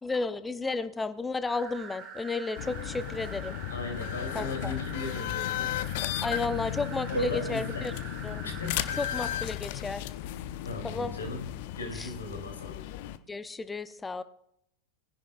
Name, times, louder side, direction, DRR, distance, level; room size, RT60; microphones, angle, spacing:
voice 1, 0.0-3.6 4.3-4.7 6.2-7.9 8.2-8.5 9.0-10.1 10.8-11.1 11.9-12.1 13.3-14.2, left 3 dB, 10° left, 12 dB, 0.7 m, -33 dB
sound 1, 1.5-9.3, right 6 dB, 35° right, 3.8 m, -45 dB
sound 2, 2.6-13.2, left 12 dB, 50° left, 0.7 m, -35 dB
voice 2, 3.7-5.8 7.1-7.9 8.4-9.0 10.6-12.8, left 3 dB, 70° left, 3 dB, 3.0 m, -38 dB
sound 3, 7.1-9.2, right 5 dB, 70° right, 2.8 m, -39 dB
21.5 x 10.5 x 2.4 m, 0.73 s
figure-of-eight pair, 90°, 0 cm